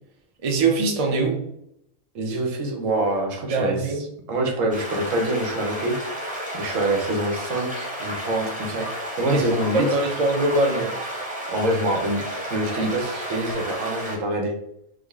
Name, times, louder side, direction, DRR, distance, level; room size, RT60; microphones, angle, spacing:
voice 1, 0.4-1.4 3.5-4.0 9.3-9.4 9.7-10.9, right 3 dB, 45° right, 2 dB, 0.5 m, -22 dB
voice 2, 2.1-3.9 4.3-6.0 6.5-8.9 9.2-9.9 11.5-14.5, right 1 dB, 75° right, 2 dB, 1.1 m, -25 dB
sound 1, 4.7-14.2, right 1 dB, 5° right, 0.8 m, -32 dB
3.7 x 2.1 x 3.5 m, 0.75 s
omnidirectional pair, 1.4 m